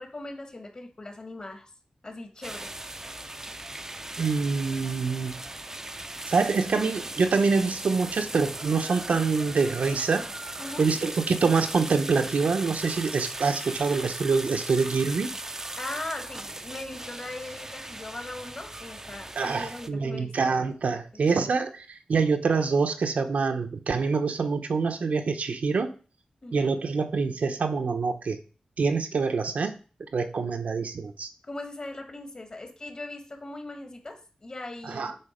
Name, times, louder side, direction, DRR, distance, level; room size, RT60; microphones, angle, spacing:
voice 1, 0.0-1.7 2.0-2.8 10.6-10.8 15.8-20.7 26.4-26.7 31.4-35.2, left 2 dB, 35° left, 5 dB, 1.6 m, -39 dB
sound 1, 2.4-19.9, right 2 dB, 20° right, 0.6 m, -38 dB
voice 2, 4.2-5.3 6.3-10.2 10.8-15.3 19.4-25.9 26.5-28.4 28.8-29.8 30.1-31.3 34.8-35.1, right 4 dB, 80° right, 6 dB, 0.9 m, -25 dB
8.9 x 4.1 x 5.1 m, 0.36 s
wide cardioid pair, 130°, 2 cm